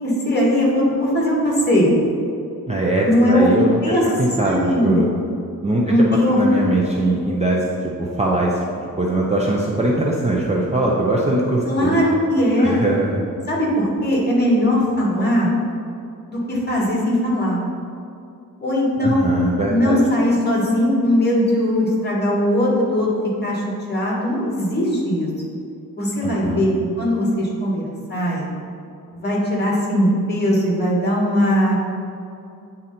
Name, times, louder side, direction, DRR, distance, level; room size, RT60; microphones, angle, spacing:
voice 1, 0.0-2.0 3.0-3.5 3.8-4.1 4.4-5.1 5.8-6.4 11.7-12.7 13.5-15.5 16.3-17.6 18.6-19.3 19.6-23.1 23.4-25.3 26.0-26.7 27.0-28.5 29.1-31.8, left 1 dB, 30° left, -4 dB, 1.7 m, -19 dB
voice 2, 2.7-3.8 4.2-5.1 5.6-5.8 6.3-12.0 12.6-13.2 19.0-20.0 26.2-26.7, right 2 dB, 20° right, -4 dB, 0.5 m, -21 dB
8.7 x 3.9 x 4.3 m, 2.6 s
wide cardioid pair, 165°, 36 cm